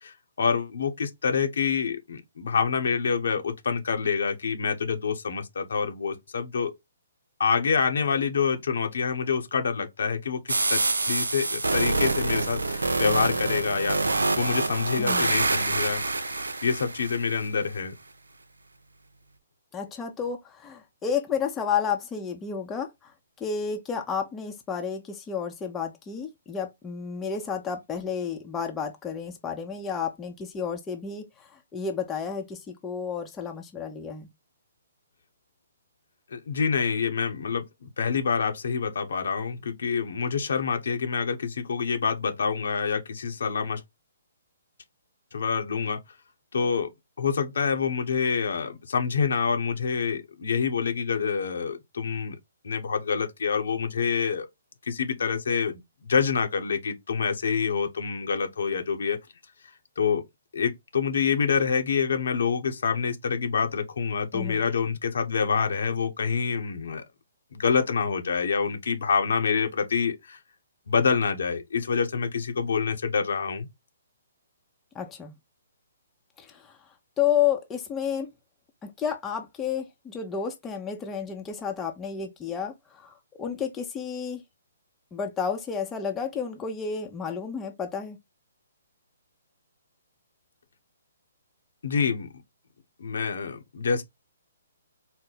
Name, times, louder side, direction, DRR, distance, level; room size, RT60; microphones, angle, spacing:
voice 1, 0.0-6.7 7.4-10.8 11.1-14.0 14.4-16.0 16.6-17.9 36.3-43.8 45.3-46.0 46.5-46.9 47.2-52.4 52.6-54.5 54.9-59.2 60.0-60.2 60.5-67.0 67.5-70.4 70.9-73.7 91.8-92.3 93.0-94.0, left 6 dB, 65° left, 0.9 m, -27 dB
sound 1, 10.5-17.5, right 3 dB, 85° right, 0.5 m, -26 dB
voice 2, 15.0-15.3 19.7-23.1 23.4-34.3 64.3-64.6 74.9-75.3 76.4-76.8 77.2-78.3 78.8-84.4 85.1-88.2, left 7 dB, 15° left, 0.7 m, -31 dB
4.3 x 2.1 x 3.9 m
figure-of-eight pair, 135°, 0 cm